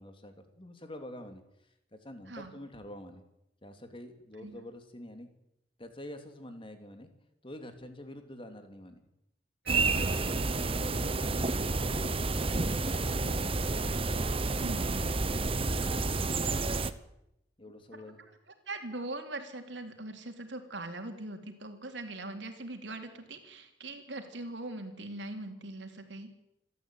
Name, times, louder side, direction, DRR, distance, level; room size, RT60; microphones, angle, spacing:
voice 1, 0.0-3.2 3.6-5.3 5.8-7.1 7.4-9.0 9.9-13.6 14.9-16.6 17.6-18.2, left 1 dB, 30° left, 7 dB, 3.1 m, -47 dB
voice 2, 9.6-10.2 14.6-15.1 18.7-26.3, right 2 dB, 90° right, 5 dB, 3.7 m, -41 dB
sound 1, 9.7-16.9, right 3 dB, 30° right, 1.0 m, -30 dB
27.0 x 13.5 x 9.3 m, 0.84 s
head